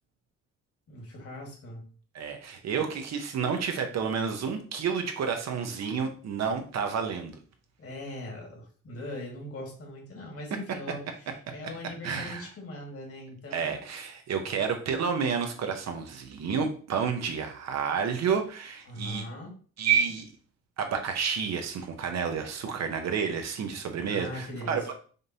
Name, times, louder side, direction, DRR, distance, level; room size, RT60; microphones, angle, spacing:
voice 1, 0.9-1.9 7.8-13.7 18.9-19.6 24.1-24.9, left 1 dB, 50° left, 0 dB, 1.8 m, -40 dB
voice 2, 2.1-7.3 12.0-12.5 13.5-19.3 19.8-20.3 20.8-24.9, right 6 dB, 60° right, 5 dB, 0.8 m, -30 dB
5.1 x 2.6 x 2.7 m, 0.41 s
cardioid pair, 90°, 30 cm